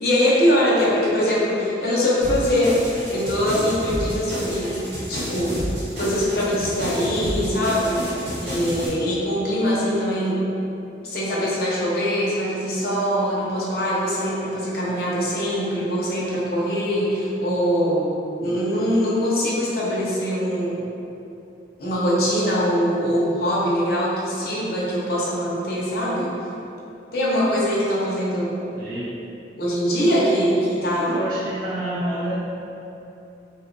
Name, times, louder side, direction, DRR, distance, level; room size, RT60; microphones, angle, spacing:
voice 1, 0.0-2.7 3.1-4.7 5.1-5.6 6.0-10.4 11.0-18.1 18.4-20.8 21.8-26.3 27.1-28.5 29.6-31.1, equal, 55° left, -7 dB, 0.7 m, -22 dB
sound 1, 2.2-8.9, equal, 80° right, 1.3 m, -30 dB
voice 2, 28.7-29.1 31.0-32.7, right 1 dB, 50° right, -8 dB, 0.5 m, -28 dB
2.7 x 2.2 x 3.7 m, 2.9 s
head